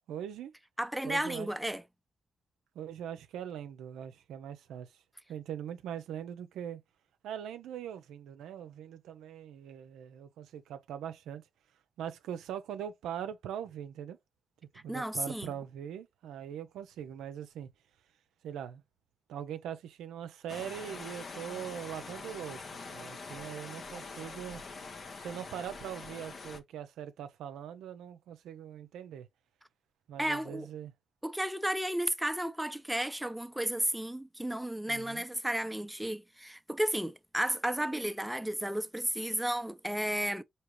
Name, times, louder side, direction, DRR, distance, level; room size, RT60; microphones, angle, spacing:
voice 1, 0.1-0.5 1.0-1.5 2.7-4.9 5.3-6.8 7.2-11.4 12.0-14.2 14.8-17.7 18.4-18.8 19.3-24.6 25.2-29.3 30.1-30.9 34.9-35.2, right 9 dB, 85° right, 0.5 m, -41 dB
voice 2, 0.8-1.8 14.9-15.5 30.2-30.7 31.2-40.4, right 1 dB, 5° right, 0.6 m, -33 dB
sound 1, 20.5-26.6, left 4 dB, 55° left, 0.9 m, -44 dB
4.6 x 2.8 x 3.0 m
supercardioid pair, 50°, 0 cm